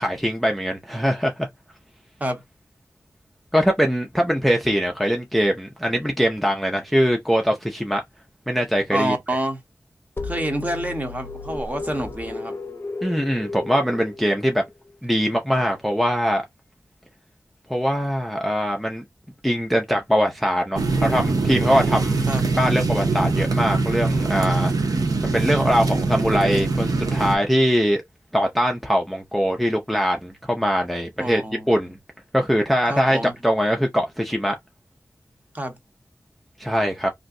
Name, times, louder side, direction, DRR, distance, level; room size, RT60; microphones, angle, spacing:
voice 1, 0.0-1.5 3.5-8.0 8.5-9.2 13.0-14.6 15.0-16.4 17.7-19.0 19.4-22.3 22.5-24.7 25.2-28.0 28.3-31.4 31.7-32.0 32.3-34.6 36.6-37.1, equal, ahead, 0.5 m, -22 dB
voice 2, 8.9-9.6 10.2-12.6 22.3-22.4 31.2-31.7 32.9-33.3 35.5-35.7, right 1 dB, 25° right, 0.9 m, -27 dB
sound 1, 10.2-14.9, left 3 dB, 40° left, 0.7 m, -34 dB
sound 2, 20.8-27.4, right 3 dB, 90° right, 0.7 m, -22 dB
2.6 x 2.1 x 3.6 m
wide cardioid pair, 70°, 6 cm